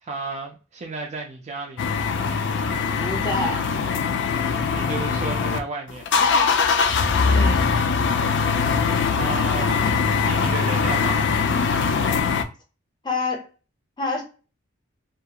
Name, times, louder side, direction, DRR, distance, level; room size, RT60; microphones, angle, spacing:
voice 1, 0.0-2.0 4.7-6.4 9.1-9.7 10.3-11.4, right 3 dB, 35° right, 0.4 m, -33 dB
sound 1, 1.8-5.6 5.9-12.4, left 5 dB, 60° left, 0.4 m, -22 dB
voice 2, 3.0-3.6 7.3-7.7 13.0-13.4 14.0-14.2, left 3 dB, 20° left, 0.7 m, -27 dB
2.4 x 2.3 x 2.8 m
head